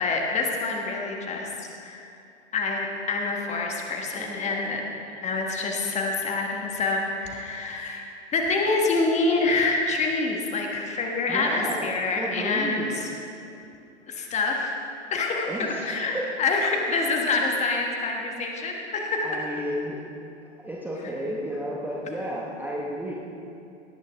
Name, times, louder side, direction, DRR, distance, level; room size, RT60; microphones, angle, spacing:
voice 1, 0.0-2.1 2.5-4.8 5.2-8.0 8.3-13.1 14.1-14.7 15.1-19.3, left 3 dB, 20° left, 1 dB, 1.4 m, -26 dB
voice 2, 4.1-4.8 11.3-11.9 12.2-12.9 15.5-16.3 19.2-20.0 20.6-23.1, equal, 5° right, -4 dB, 1.0 m, -33 dB
17.5 x 9.7 x 3.4 m, 2.6 s
figure-of-eight pair, 110°, 35 cm